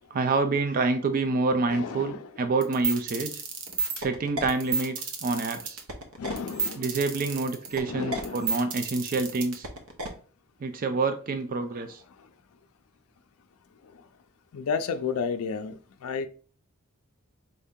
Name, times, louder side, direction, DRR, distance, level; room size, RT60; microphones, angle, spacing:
voice 1, 0.1-3.4 4.0-5.8 6.8-9.7 10.6-12.0, right 3 dB, 40° right, 0.4 m, -27 dB
voice 2, 1.7-2.3 6.2-6.9 7.8-8.5 14.5-16.3, left 5 dB, 75° left, 0.4 m, -32 dB
sound 1, 2.6-10.1, right 4 dB, 75° right, 0.9 m, -31 dB
4.4 x 2.7 x 3.5 m
head